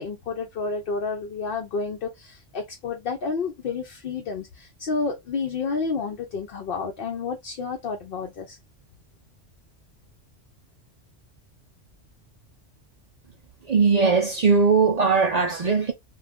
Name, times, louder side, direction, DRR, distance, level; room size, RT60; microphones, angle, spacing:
voice 1, 0.0-8.6, left 4 dB, 60° left, 0.7 m, -30 dB
voice 2, 13.7-15.9, right 4 dB, 55° right, 0.4 m, -19 dB
2.5 x 2.3 x 3.4 m
omnidirectional pair, 1.2 m